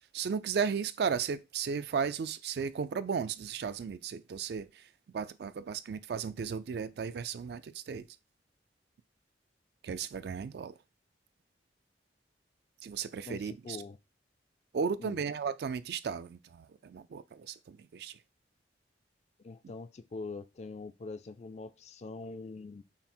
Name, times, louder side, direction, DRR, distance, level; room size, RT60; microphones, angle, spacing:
voice 1, 0.1-4.9 5.1-8.1 9.8-10.7 12.8-13.8 14.7-18.2, right 6 dB, 60° right, 0.3 m, -35 dB
voice 2, 13.2-14.0 15.0-15.2 19.4-22.8, left 3 dB, 40° left, 0.3 m, -43 dB
5.7 x 2.0 x 4.3 m
head